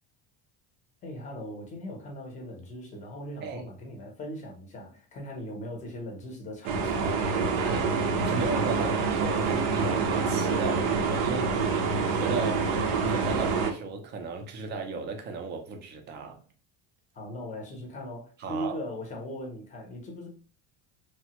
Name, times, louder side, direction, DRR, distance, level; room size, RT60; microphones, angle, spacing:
voice 1, 1.0-7.3 8.8-9.0 17.1-20.3, equal, 20° left, 0.6 m, -39 dB
sound 1, 6.6-13.7, right 4 dB, 90° right, 0.7 m, -26 dB
voice 2, 7.5-8.0 8.2-16.4 18.4-18.8, right 4 dB, 30° right, 0.4 m, -35 dB
3.1 x 2.1 x 2.8 m
cardioid pair, 175°, 39 cm